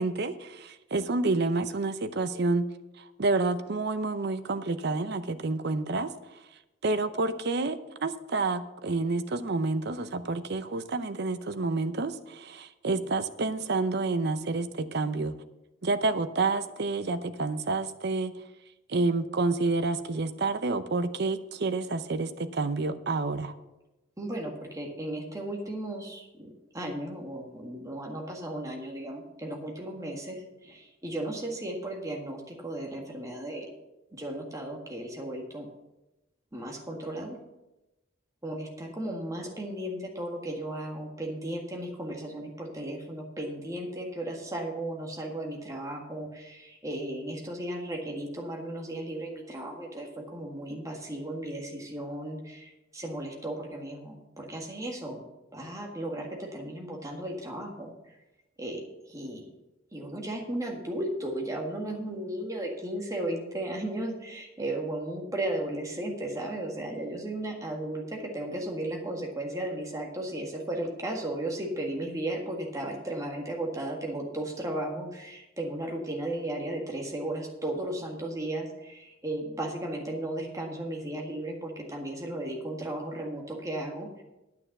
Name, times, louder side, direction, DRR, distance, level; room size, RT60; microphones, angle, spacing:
voice 1, 0.0-2.7 3.0-6.4 6.8-15.4 15.8-18.4 18.9-23.5, right 3 dB, 55° right, 11 dB, 0.7 m, -29 dB
voice 2, 24.2-33.7 34.1-35.7 36.5-37.4 38.4-55.2 55.5-57.9 58.6-59.5 59.9-84.2, right 1 dB, 15° right, 0 dB, 1.8 m, -35 dB
9.6 x 8.9 x 6.0 m, 0.99 s
head